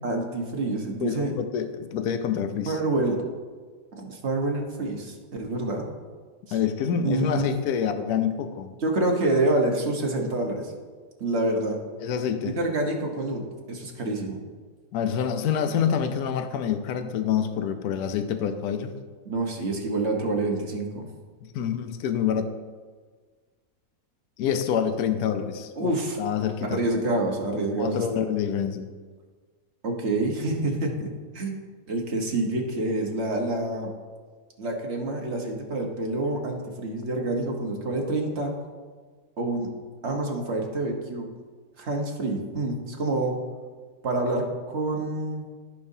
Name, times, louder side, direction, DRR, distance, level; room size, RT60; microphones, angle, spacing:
voice 1, 0.0-1.3 2.7-3.2 4.0-5.9 6.5-6.6 7.0-7.5 8.8-10.7 11.2-11.8 12.5-14.4 19.3-21.1 25.8-26.2 26.6-28.2 29.8-31.1 31.3-31.6 31.9-33.9 34.6-38.6 39.4-39.7 40.0-41.3 41.8-43.4 44.0-45.5, right 2 dB, 45° right, 1 dB, 1.4 m, -27 dB
voice 2, 1.0-2.8 6.5-8.7 12.0-12.5 14.9-18.9 21.4-22.5 24.4-26.8 27.8-28.9, left 8 dB, 70° left, 8 dB, 1.1 m, -27 dB
15.0 x 5.2 x 2.7 m, 1.5 s
omnidirectional pair, 1.7 m